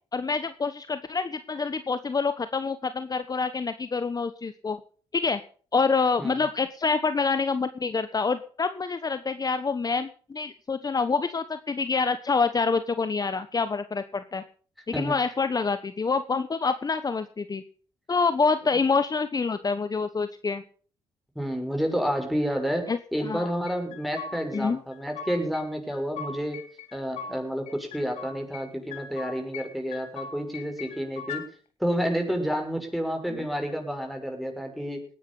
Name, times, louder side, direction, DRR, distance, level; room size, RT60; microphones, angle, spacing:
voice 1, 0.1-4.8 5.1-5.4 5.7-14.4 14.9-17.6 18.1-20.6 22.9-23.5 24.5-24.8, left 4 dB, 35° left, 12 dB, 1.1 m, -27 dB
voice 2, 21.3-26.6 26.9-31.4 31.8-35.0, equal, ahead, 4 dB, 6.5 m, -30 dB
sound 1, 23.7-24.6 24.9-25.6 25.9-27.4 27.7-28.6 28.9-29.7 29.9-31.4, left 6 dB, 85° left, 2.7 m, -40 dB
19.0 x 10.5 x 5.4 m, 0.42 s
supercardioid pair, 60°, 11 cm